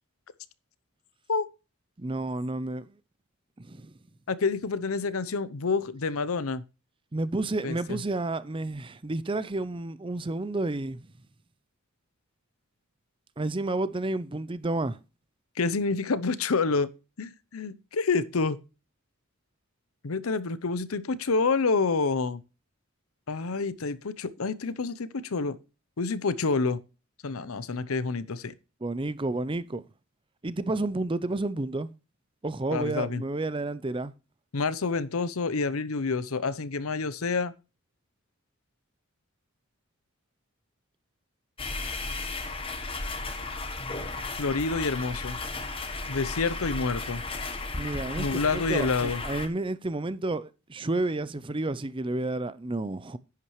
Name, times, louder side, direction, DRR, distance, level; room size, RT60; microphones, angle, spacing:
voice 1, 2.0-3.0 3.6-3.9 7.1-11.1 13.4-15.0 28.8-29.8 30.4-31.9 32.4-34.1 47.8-53.2, right 2 dB, 25° right, 0.6 m, -31 dB
voice 2, 4.3-6.6 7.6-8.0 15.6-16.9 17.2-18.6 20.0-22.4 23.3-25.6 26.0-26.8 27.2-28.5 32.7-33.2 34.5-37.5 44.4-45.4 46.1-47.2 48.2-49.2, left 4 dB, 85° left, 0.8 m, -28 dB
sound 1, 41.6-49.5, left 3 dB, 25° left, 1.2 m, -34 dB
11.0 x 8.7 x 3.1 m
head